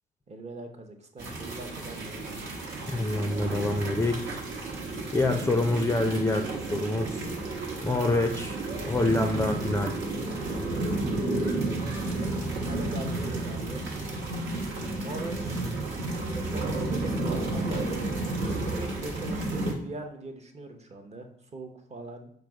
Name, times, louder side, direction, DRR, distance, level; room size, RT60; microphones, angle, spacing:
voice 1, 0.3-2.5 12.6-13.9 15.0-15.6 16.3-17.8 18.7-22.3, right 2 dB, 35° right, 4 dB, 0.7 m, -41 dB
sound 1, 1.2-19.7, right 2 dB, 70° right, 1.0 m, -32 dB
voice 2, 2.9-4.4 5.1-6.4 6.7-7.3 7.8-8.6 8.8-9.9, left 2 dB, 15° left, 3 dB, 0.4 m, -26 dB
4.9 x 2.0 x 4.6 m, 0.64 s
cardioid pair, 90°, 20 cm